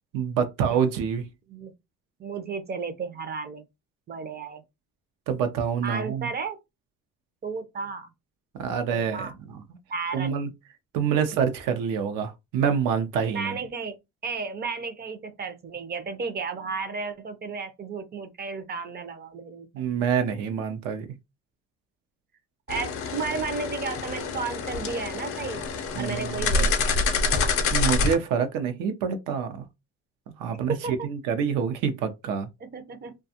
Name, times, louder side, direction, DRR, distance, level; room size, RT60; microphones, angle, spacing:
voice 1, 0.1-1.3 5.3-6.3 8.6-9.6 10.1-10.5 10.9-13.6 19.7-21.1 25.9-26.7 27.7-29.6 30.4-32.5, right 7 dB, 80° right, 0.6 m, -27 dB
voice 2, 2.2-3.6 4.1-4.6 5.8-6.6 7.4-8.1 8.9-9.3 9.9-10.3 13.3-14.0 14.2-19.8 22.7-25.7 26.0-27.4 30.7-31.1 32.6-33.2, right 4 dB, 30° right, 0.5 m, -33 dB
sound 1, 22.7-28.2, left 4 dB, 45° left, 0.5 m, -27 dB
2.4 x 2.3 x 2.7 m
cardioid pair, 100°, 32 cm